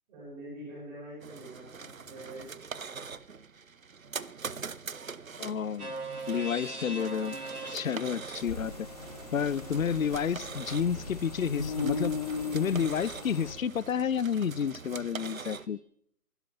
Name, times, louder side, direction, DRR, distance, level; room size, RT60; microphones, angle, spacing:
voice 1, 0.1-2.5 2.8-3.0 7.9-8.2, right 1 dB, 10° right, -6 dB, 6.1 m, -45 dB
sound 1, 1.2-15.7, right 5 dB, 65° right, 0.9 m, -43 dB
voice 2, 5.4-5.9 6.3-7.3 7.7-8.9 9.3-12.2 12.5-15.8, left 7 dB, 65° left, 23 dB, 0.5 m, -30 dB
sound 2, 5.8-13.7, right 2 dB, 80° right, 4.0 m, -44 dB
sound 3, 8.4-13.5, left 4 dB, 25° left, 1.5 m, -37 dB
16.0 x 11.0 x 5.9 m, 0.69 s
figure-of-eight pair, 160°, 45 cm